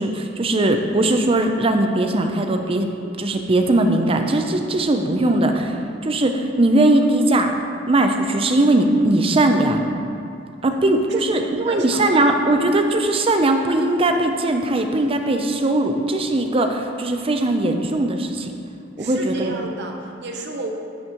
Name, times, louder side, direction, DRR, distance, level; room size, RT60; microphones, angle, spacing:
voice 1, 0.0-2.9 3.2-7.5 7.9-9.8 10.6-18.5 19.0-19.5, right 2 dB, 30° right, 5 dB, 0.5 m, -19 dB
voice 2, 11.1-12.3 19.0-20.7, right 2 dB, 60° right, 2 dB, 0.8 m, -32 dB
10.5 x 6.2 x 3.0 m, 2.5 s
head